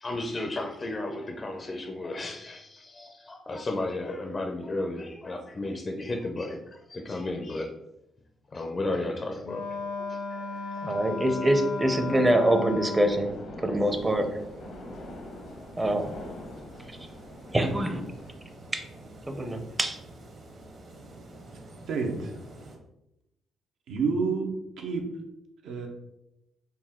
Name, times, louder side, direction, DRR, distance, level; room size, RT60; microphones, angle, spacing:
voice 1, 0.0-7.7 8.5-10.9, left 2 dB, 35° left, 2 dB, 0.5 m, -34 dB
Wind instrument woodwind instrument, 9.4-13.3, left 4 dB, 90° left, 0.4 m, -35 dB
voice 2, 10.8-14.4 15.8-16.1 16.9-17.0 17.5-18.1 18.7-18.8 19.3-20.0, right 1 dB, 20° right, 6 dB, 0.6 m, -25 dB
sound 1, 13.0-18.3, left 2 dB, 70° left, 0.8 m, -44 dB
sound 2, 13.7-22.8, right 2 dB, 50° right, 0.9 m, -48 dB
voice 3, 21.9-22.3 23.9-25.0 25.6-25.9, right 4 dB, 80° right, 2 dB, 0.7 m, -29 dB
4.1 x 2.2 x 3.6 m, 0.86 s
cardioid pair, 90°, 0 cm